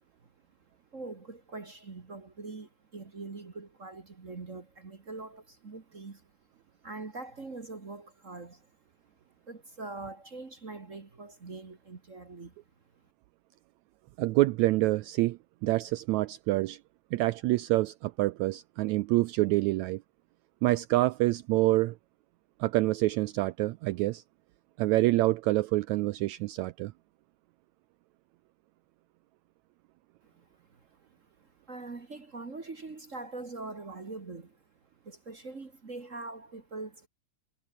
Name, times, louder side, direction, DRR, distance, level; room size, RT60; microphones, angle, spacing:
voice 1, 0.9-6.3 6.8-8.7 9.5-12.5 30.2-30.8 31.4-34.6 35.0-37.1, right 3 dB, 30° right, 1.5 m, -43 dB
voice 2, 14.2-16.8 17.1-20.0 20.6-22.0 22.6-24.2 24.8-26.9, right 18 dB, 90° right, 1.6 m, -27 dB
omnidirectional pair, 3.9 m